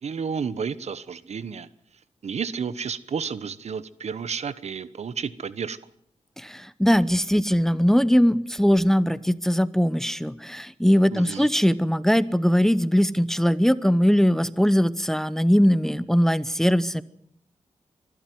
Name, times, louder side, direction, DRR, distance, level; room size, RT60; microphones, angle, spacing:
voice 1, 0.0-1.7 2.2-5.8 11.1-11.5, right 6 dB, 65° right, 16 dB, 1.1 m, -31 dB
voice 2, 6.4-17.0, equal, 5° left, 17 dB, 0.9 m, -21 dB
24.0 x 12.5 x 9.4 m, 0.70 s
cardioid pair, 65°, 12 cm